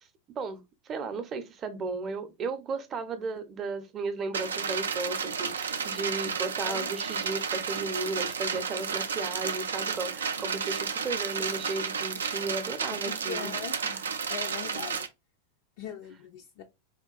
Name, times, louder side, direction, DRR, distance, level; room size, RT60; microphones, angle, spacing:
voice 1, 0.4-14.1, right 3 dB, 30° right, 0.6 m, -35 dB
sound 1, 4.3-15.1, right 6 dB, 75° right, 0.3 m, -32 dB
voice 2, 13.1-13.7 14.3-15.1 15.8-16.7, left 8 dB, 55° left, 0.4 m, -40 dB
3.6 x 2.2 x 2.3 m
figure-of-eight pair, 90°, 0 cm